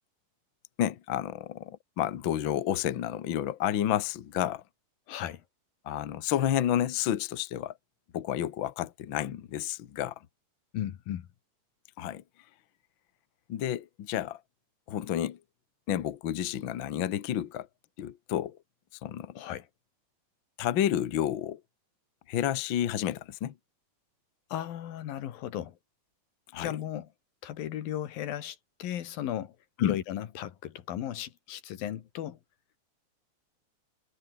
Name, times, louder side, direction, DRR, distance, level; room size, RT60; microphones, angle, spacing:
voice 1, 0.8-4.6 5.9-7.7 8.1-10.1 12.0-12.2 13.5-14.4 14.9-15.4 15.9-17.7 18.0-18.6 19.0-19.3 20.6-21.6 22.3-23.5 26.5-26.7 29.8-30.0, left 11 dB, 65° left, 1.2 m, -30 dB
voice 2, 5.1-5.4 10.7-11.3 19.4-19.7 24.5-25.8 26.6-27.1 27.4-29.6 29.8-32.4, left 11 dB, 85° left, 3.5 m, -36 dB
omnidirectional pair, 4.0 m